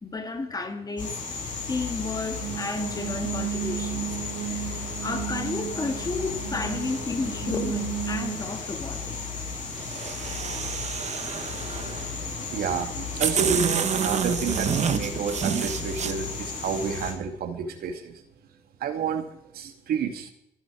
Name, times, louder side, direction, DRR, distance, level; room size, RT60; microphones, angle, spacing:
voice 1, 0.0-4.1 4.5-4.7 5.0-9.1, left 3 dB, 20° left, 2.2 m, -32 dB
sound 1, 1.0-17.1, left 5 dB, 50° left, 7.5 m, -34 dB
sound 2, 2.4-8.4, right 11 dB, 90° right, 2.1 m, -34 dB
sound 3, 9.8-12.1 12.8-12.9 13.2-16.1, right 7 dB, 40° right, 1.3 m, -28 dB
voice 2, 12.1-18.1 18.8-19.2 19.5-20.3, right 6 dB, 65° right, 2.6 m, -30 dB
23.5 x 11.5 x 4.8 m
cardioid pair, 110°, 17 cm